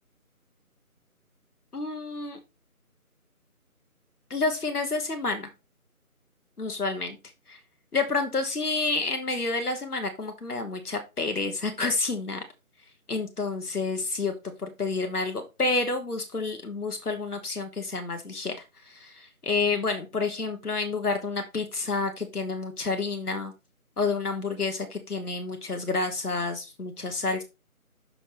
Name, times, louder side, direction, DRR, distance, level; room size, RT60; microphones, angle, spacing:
voice 1, 1.7-2.4 4.3-5.5 6.6-7.2 7.5-7.6 7.9-12.4 13.1-14.3 14.6-18.5 18.9-23.5 24.0-27.4, left 3 dB, 90° left, 5 dB, 1.6 m, -29 dB
6.8 x 5.8 x 3.2 m, 0.27 s
figure-of-eight pair, 175°, 44 cm